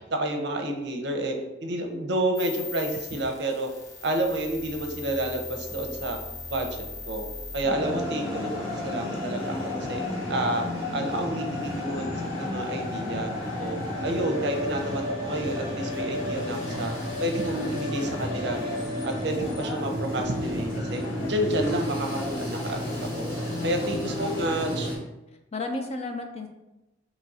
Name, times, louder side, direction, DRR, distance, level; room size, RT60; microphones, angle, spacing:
voice 1, 0.1-1.3 1.6-3.7 4.0-6.2 6.5-6.7 7.1-7.3 7.5-10.0 10.3-10.6 10.9-13.8 14.0-16.9 17.2-18.8 19.0-21.0 21.3-22.8 23.2-23.3 23.6-24.9, right 1 dB, 55° right, 3 dB, 0.6 m, -29 dB
sound 1, 2.3-7.6, left 3 dB, 50° left, 1.0 m, -39 dB
sound 2, 7.6-25.0, left 1 dB, 80° left, 1.4 m, -31 dB
voice 2, 7.7-8.1 23.5-24.0 25.5-26.5, left 2 dB, 30° left, 4 dB, 0.4 m, -34 dB
3.6 x 3.0 x 4.1 m, 0.98 s
head